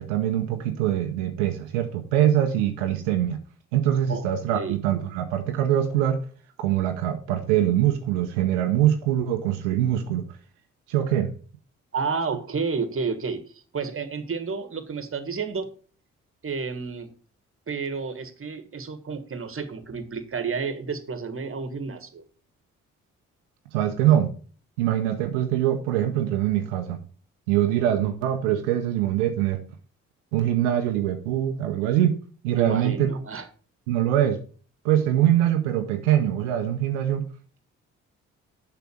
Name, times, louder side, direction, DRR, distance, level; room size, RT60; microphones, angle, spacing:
voice 1, 0.0-3.4 3.7-6.2 6.6-10.2 10.9-11.3 23.7-24.3 24.8-27.0 27.5-29.6 30.3-32.2 32.4-33.1 33.9-34.4 34.8-37.3, right 11 dB, 85° right, 5 dB, 0.8 m, -23 dB
voice 2, 4.1-4.8 11.9-13.4 13.7-15.7 16.4-17.1 17.7-22.2 32.6-33.5, right 5 dB, 35° right, 10 dB, 1.6 m, -31 dB
7.0 x 5.9 x 6.3 m, 0.40 s
hypercardioid pair, 45°, 35 cm